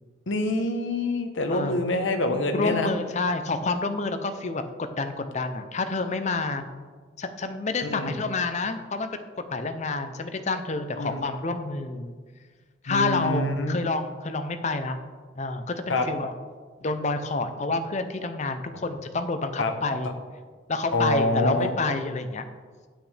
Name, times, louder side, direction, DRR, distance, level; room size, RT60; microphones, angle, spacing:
voice 1, 0.3-2.9 7.8-8.2 11.0-11.3 12.9-13.8 15.9-16.1 18.7-18.8 19.6-19.7 20.9-21.7, left 2 dB, 70° left, 6 dB, 1.0 m, -26 dB
voice 2, 1.5-1.8 2.5-6.6 7.2-9.1 9.5-12.1 12.8-15.0 15.4-16.3 16.8-20.1 20.7-22.4, left 3 dB, 35° left, 8 dB, 0.6 m, -28 dB
9.1 x 8.4 x 3.4 m, 1.5 s
head